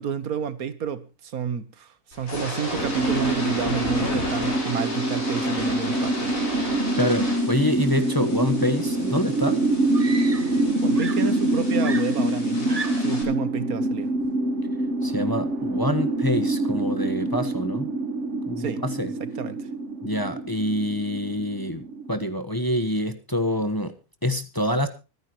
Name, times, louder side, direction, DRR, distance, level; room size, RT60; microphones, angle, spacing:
voice 1, 0.0-6.3 10.8-14.1 18.6-18.8 19.2-19.7, right 7 dB, 75° right, 1.6 m, -31 dB
sound 1, 2.1-13.2, left 1 dB, 60° left, 5.2 m, -34 dB
sound 2, 2.8-22.3, right 1 dB, 50° right, 1.7 m, -25 dB
voice 2, 7.0-9.6 15.0-17.9 18.5-19.1 20.0-23.9 24.2-24.9, left 1 dB, 15° left, 1.2 m, -26 dB
Screaming, 9.9-10.7 11.0-13.3 14.2-14.5, right 4 dB, 30° right, 1.1 m, -36 dB
25.0 x 10.0 x 3.1 m
omnidirectional pair, 1.6 m